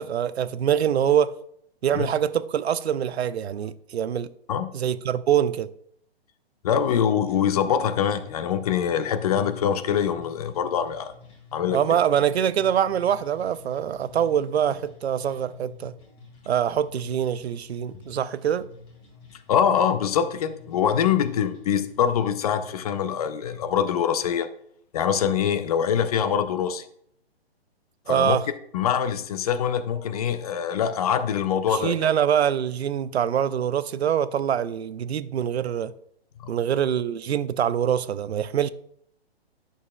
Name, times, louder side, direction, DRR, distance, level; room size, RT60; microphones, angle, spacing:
voice 1, 0.0-1.3 1.8-4.3 4.7-5.7 11.7-15.9 16.5-18.7 28.1-28.4 31.7-35.9 36.5-38.7, right 9 dB, 80° right, 0.5 m, -24 dB
voice 2, 6.6-11.1 11.5-12.0 19.5-24.5 24.9-26.8 28.1-28.4 28.7-32.1 36.4-36.5, left 8 dB, 40° left, 0.5 m, -24 dB
sound 1, 7.3-23.3, left 5 dB, 15° left, 1.4 m, -48 dB
10.0 x 6.5 x 2.2 m
hypercardioid pair, 140°, 31 cm